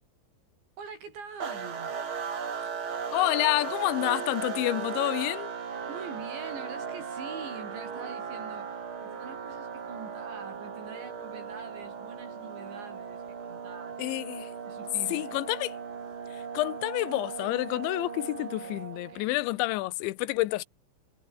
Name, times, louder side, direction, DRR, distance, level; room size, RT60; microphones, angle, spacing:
voice 1, 0.8-2.0 5.9-14.0 14.7-15.3 18.3-19.3, right 5 dB, 75° right, 8.3 m, -45 dB
sound 1, 1.4-19.2, right 6 dB, 35° right, 2.3 m, -37 dB
voice 2, 3.1-5.5 14.0-14.5 15.1-15.8 16.3-20.6, left 19 dB, 85° left, 3.2 m, -29 dB
omnidirectional pair, 5.3 m